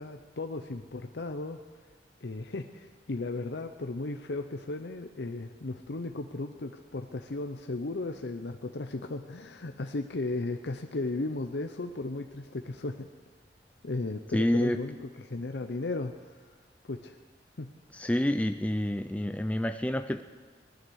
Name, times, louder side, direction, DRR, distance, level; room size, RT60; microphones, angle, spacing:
voice 1, 0.0-1.6 2.2-13.1 13.8-16.4 16.8-17.2 17.6-17.7, left 2 dB, 75° left, 5 dB, 0.7 m, -35 dB
voice 2, 14.3-14.8 17.9-20.2, left 1 dB, 10° left, 8 dB, 0.4 m, -28 dB
18.5 x 12.0 x 6.4 m, 1.5 s
head